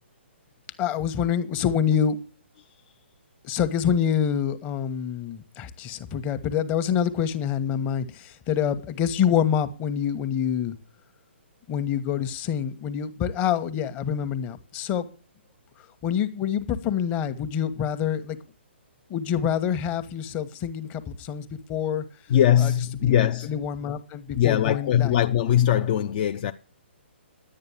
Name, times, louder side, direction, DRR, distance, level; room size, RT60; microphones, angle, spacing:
voice 1, 0.8-2.2 3.4-10.7 11.7-15.1 16.0-18.4 19.1-22.0 22.6-22.7 23.0-23.1 23.4-25.2, left 8 dB, 25° left, 1.2 m, -26 dB
voice 2, 22.3-23.6 24.4-26.5, left 10 dB, 45° left, 0.6 m, -21 dB
11.0 x 8.9 x 7.2 m
hypercardioid pair, 140°, 6 cm